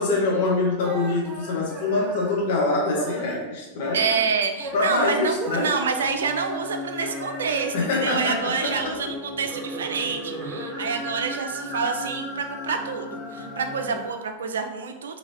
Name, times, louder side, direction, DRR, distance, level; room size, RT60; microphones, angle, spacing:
voice 1, 0.0-4.1 4.7-5.8 7.7-9.0, left 3 dB, 55° left, -2 dB, 0.8 m, -24 dB
sound 1, 0.6-2.4 2.8-3.5 3.7-8.9 9.3-14.3, right 1 dB, 25° right, 0.9 m, -37 dB
voice 2, 3.9-7.7 8.0-15.2, right 5 dB, 65° right, 6 dB, 0.3 m, -27 dB
sound 2, 6.0-14.0, left 2 dB, 15° left, 0.5 m, -38 dB
2.8 x 2.8 x 2.8 m, 1.1 s
figure-of-eight pair, 90°, 0 cm